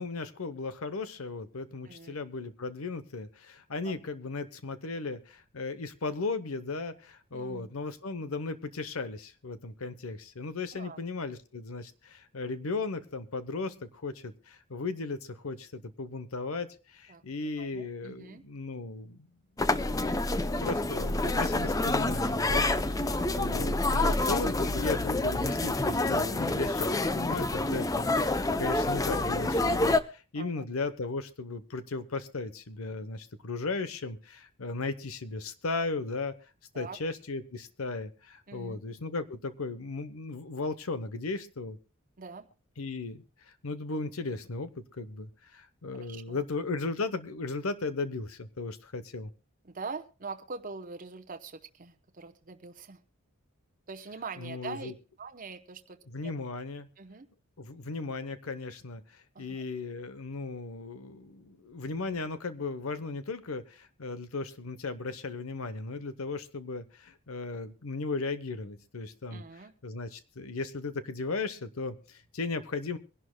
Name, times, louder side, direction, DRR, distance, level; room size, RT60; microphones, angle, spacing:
voice 1, 0.0-19.3 20.6-36.3 36.7-41.8 42.8-49.3 54.4-54.9 56.1-56.9 57.6-73.0, left 3 dB, 80° left, 12 dB, 0.9 m, -36 dB
voice 2, 1.9-2.2 3.8-3.9 7.3-7.7 10.7-11.0 17.1-17.2 17.6-18.4 23.0-23.4 30.3-30.6 36.7-37.0 38.5-38.8 42.2-42.5 46.0-46.4 49.6-53.0 53.9-54.9 55.2-56.0 56.2-56.3 57.0-57.3 59.3-59.6 69.3-69.7, right 4 dB, 40° right, 7 dB, 0.8 m, -43 dB
sound 1, 19.6-30.0, left 2 dB, 15° left, 0.5 m, -28 dB
24.0 x 11.5 x 2.2 m, 0.32 s
head